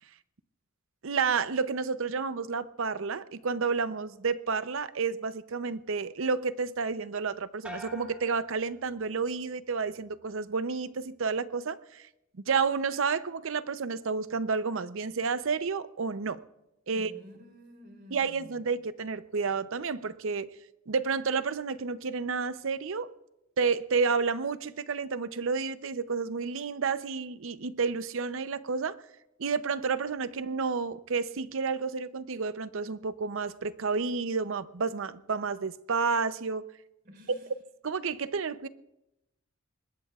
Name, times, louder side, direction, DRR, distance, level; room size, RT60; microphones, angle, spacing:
voice 1, 1.0-12.1 12.5-16.4 16.9-17.1 18.1-20.5 20.9-23.1 23.6-29.0 29.4-36.6 37.8-38.7, right 5 dB, 65° right, 0.6 m, -30 dB
sound 1, 7.6-9.4 9.8-10.4, left 1 dB, 5° right, 2.3 m, -47 dB
voice 2, 16.9-18.6 37.0-37.5, left 1 dB, 45° right, 4.0 m, -51 dB
25.5 x 20.5 x 2.4 m
head